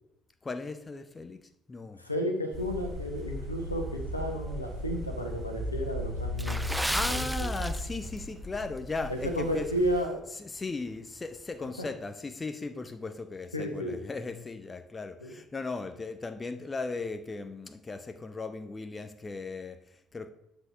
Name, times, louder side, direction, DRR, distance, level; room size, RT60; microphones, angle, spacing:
voice 1, 0.4-2.0 6.9-9.7 10.3-20.3, left 3 dB, 25° left, 0.9 m, -37 dB
voice 2, 2.0-6.6 7.1-7.5 9.1-10.2 13.5-14.0 15.2-15.4, equal, 90° left, 1.4 m, -32 dB
sound 1, 2.5-10.0, equal, 30° right, 4.3 m, -37 dB
Water / Splash splatter, 6.3-8.2 8.5-8.8 9.4-9.6 10.0-10.1, right 1 dB, 5° right, 0.5 m, -34 dB
10.0 x 6.9 x 4.6 m
figure-of-eight pair, 50°, 0 cm